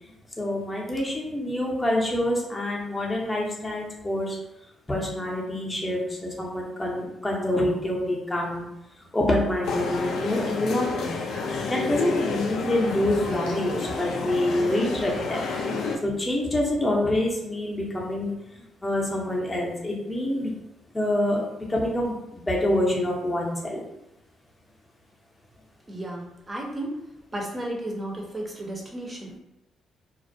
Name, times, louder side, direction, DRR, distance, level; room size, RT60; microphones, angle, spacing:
voice 1, 0.4-4.4 4.9-8.7 9.0-11.1 11.7-15.5 16.0-20.5 20.9-21.4 21.7-23.8, left 1 dB, 15° left, -2 dB, 0.6 m, -26 dB
sound 1, 9.6-16.0, left 4 dB, 80° left, 0.3 m, -30 dB
voice 2, 25.9-27.0 27.3-29.4, right 1 dB, 25° right, -1 dB, 0.6 m, -33 dB
2.3 x 2.1 x 2.6 m, 0.88 s
cardioid pair, 90°, 0 cm